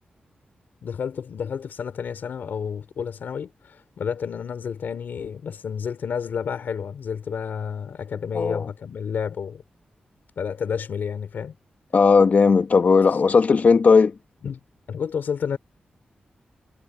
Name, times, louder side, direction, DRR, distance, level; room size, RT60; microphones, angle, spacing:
voice 1, 0.8-9.6 10.4-11.5 13.1-13.2 14.4-14.6 14.9-15.6, left 7 dB, 85° left, 4.1 m, -30 dB
voice 2, 8.3-8.7 11.9-14.1, left 5 dB, 55° left, 1.6 m, -17 dB
wide cardioid pair, 95°, 3 cm